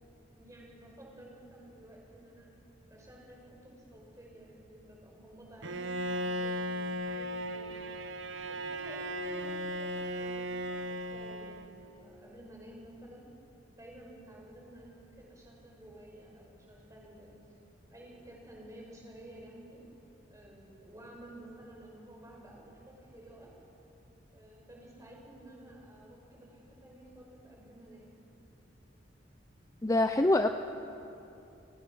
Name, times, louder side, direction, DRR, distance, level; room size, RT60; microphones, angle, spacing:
voice 1, 0.3-2.5 2.9-7.8 8.5-13.3 13.7-17.3 17.9-19.8 20.3-23.6 24.3-28.2, right 1 dB, 15° right, -2 dB, 5.8 m, -52 dB
Bowed string instrument, 5.6-11.9, equal, 75° right, 1.1 m, -36 dB
voice 2, 29.8-30.5, left 1 dB, 15° left, 7 dB, 0.6 m, -24 dB
29.5 x 19.0 x 6.3 m, 2.8 s
head